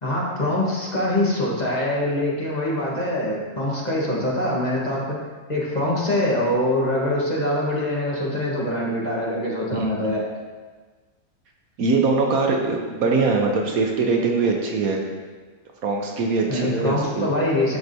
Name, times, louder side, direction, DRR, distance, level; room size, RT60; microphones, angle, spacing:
voice 1, 0.0-5.2 5.5-10.2 16.5-17.8, left 1 dB, 30° left, -5 dB, 1.4 m, -24 dB
voice 2, 9.7-10.2 11.8-15.0 15.8-17.3, right 4 dB, 70° right, 1 dB, 1.2 m, -22 dB
12.0 x 4.7 x 2.7 m, 1.4 s
omnidirectional pair, 1.6 m